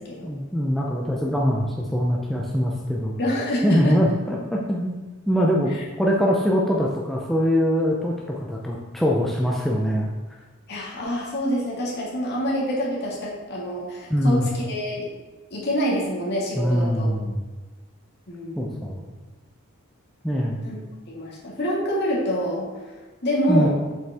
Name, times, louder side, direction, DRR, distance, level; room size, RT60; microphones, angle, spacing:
voice 1, 0.2-3.1 3.6-5.0 5.3-5.7 6.0-10.1 14.1-14.5 16.6-17.4 18.5-19.1 20.2-20.6 23.5-23.7, equal, ahead, -3 dB, 0.5 m, -23 dB
voice 2, 3.2-4.0 10.7-15.1 15.5-17.1 18.3-18.8 20.6-20.7 21.1-22.7 23.2-23.7, equal, 50° left, -4 dB, 1.9 m, -26 dB
7.3 x 5.4 x 3.5 m, 1.2 s
head